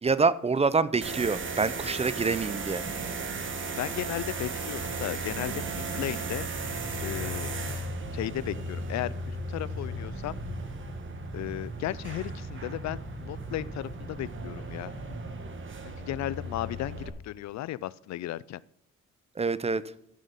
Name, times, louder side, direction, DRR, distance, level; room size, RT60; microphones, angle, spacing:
voice 1, 0.0-2.9 19.4-19.8, right 4 dB, 20° right, 16 dB, 0.5 m, -26 dB
sound 1, 1.0-17.1, right 2 dB, 40° right, 1.4 m, -36 dB
voice 2, 3.8-6.5 7.0-7.5 8.1-10.4 11.3-14.9 16.0-18.6, left 14 dB, 65° left, 20 dB, 0.4 m, -35 dB
sound 2, 6.5-15.3, right 1 dB, 85° left, 3.6 m, -43 dB
11.0 x 6.3 x 5.3 m, 0.72 s
cardioid pair, 90°, 30 cm